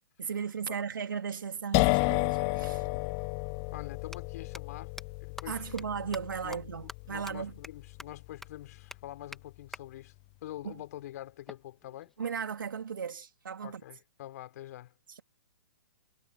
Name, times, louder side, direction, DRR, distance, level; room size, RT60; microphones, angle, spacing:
voice 1, 0.2-2.9 5.5-7.5 10.6-10.7 12.2-13.8, right 6 dB, 70° right, 2.7 m, -36 dB
sound 1, 1.7-9.3, left 34 dB, 30° left, 0.8 m, -32 dB
voice 2, 3.7-4.9 5.2-6.1 6.4-6.6 7.1-10.1 10.4-12.1 13.6-14.9, left 14 dB, 50° left, 4.6 m, -45 dB
sound 2, 4.1-4.2 4.5-4.6 5.0-5.1 5.4-5.5 5.8-5.9 6.1-6.2 6.5-6.6 6.9-7.0 7.3-7.4 7.6-7.7 8.0-8.1 8.4-8.5 8.9-9.0 9.3-9.4 9.7-9.8 11.5-12.5, left 1 dB, 5° left, 2.8 m, -45 dB
figure-of-eight pair, 125°, 11 cm